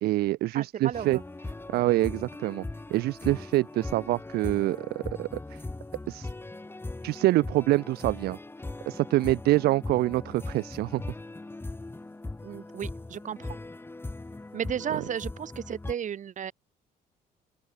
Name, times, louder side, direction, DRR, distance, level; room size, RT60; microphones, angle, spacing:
voice 1, 0.0-1.2 1.7-2.6 2.9-5.6 6.1-6.3 7.0-8.4 8.9-11.0, right 17 dB, 70° right, 0.4 m, -26 dB
voice 2, 0.5-1.2 12.4-13.6 14.5-16.5, right 9 dB, 50° right, 2.8 m, -34 dB
sound 1, 0.9-15.9, left 2 dB, 15° left, 6.8 m, -39 dB
open air
cardioid pair, 110°, 17 cm